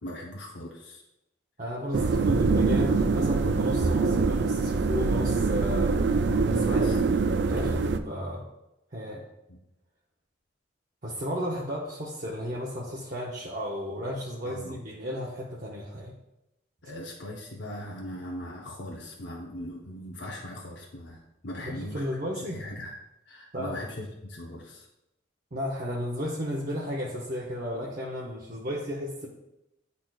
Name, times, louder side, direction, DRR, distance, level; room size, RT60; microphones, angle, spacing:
voice 1, 0.0-1.0 6.7-7.3 9.5-9.6 14.4-14.8 16.8-22.0 22.3-22.9 23.3-24.9, left 1 dB, 75° left, -2 dB, 0.8 m, -40 dB
voice 2, 1.6-6.2 6.5-8.4 8.9-9.2 11.0-16.1 21.6-22.6 23.5-23.8 25.5-29.3, equal, 45° right, -5 dB, 0.8 m, -34 dB
sound 1, 1.9-8.0, right 4 dB, 70° right, 0.4 m, -24 dB
10.5 x 4.1 x 2.4 m, 0.91 s
head